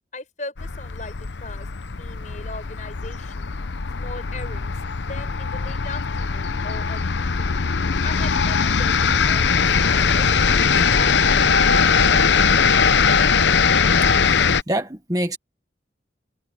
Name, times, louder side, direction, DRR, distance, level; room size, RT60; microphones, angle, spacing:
voice 1, 0.1-1.7 2.0-3.5 4.0-4.7 5.1-7.7 8.0-12.9, left 2 dB, 45° left, 6.7 m, -39 dB
sound 1, 0.6-14.6, left 5 dB, 85° left, 0.8 m, -20 dB
voice 2, 14.7-15.4, right 1 dB, 20° right, 1.5 m, -25 dB
head